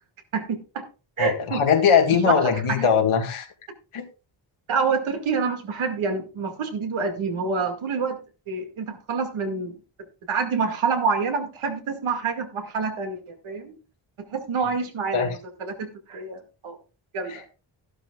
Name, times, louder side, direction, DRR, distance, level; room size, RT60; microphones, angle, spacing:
voice 1, 0.3-0.8 1.2-1.6 2.3-2.9 4.7-8.2 8.5-9.7 10.3-13.8 14.3-16.8 17.1-17.4, right 5 dB, 75° right, 2.2 m, -27 dB
voice 2, 1.2-3.5 3.9-4.1 15.1-15.3 17.3-17.4, left 6 dB, 85° left, 1.9 m, -20 dB
13.0 x 11.5 x 2.4 m
wide cardioid pair, 135°, 48 cm